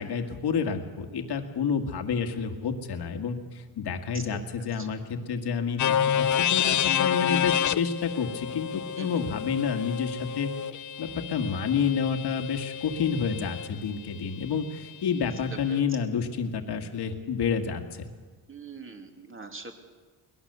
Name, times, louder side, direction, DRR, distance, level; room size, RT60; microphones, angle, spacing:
voice 1, 0.0-10.5 11.0-18.1, left 6 dB, 75° left, 5 dB, 1.9 m, -29 dB
voice 2, 4.1-4.9 9.0-9.2 15.7-15.8 18.5-19.7, right 4 dB, 30° right, 4 dB, 2.8 m, -43 dB
sound 1, 5.8-13.7, left 9 dB, 45° left, 0.6 m, -29 dB
22.5 x 19.5 x 6.8 m, 1.4 s
cardioid pair, 95°, 40 cm